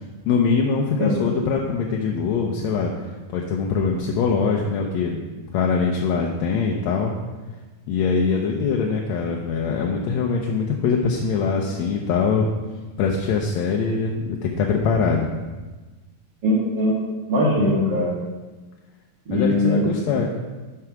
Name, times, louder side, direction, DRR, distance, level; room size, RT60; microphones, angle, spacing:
voice 1, 0.3-2.9 3.3-5.2 5.5-7.1 7.9-12.5 13.0-15.4 19.3-20.3, left 5 dB, 75° left, 0 dB, 1.9 m, -22 dB
voice 2, 16.4-16.9 17.3-18.1 19.3-19.8, left 1 dB, 40° right, -8 dB, 2.3 m, -20 dB
11.0 x 4.8 x 5.9 m, 1.2 s
omnidirectional pair, 3.5 m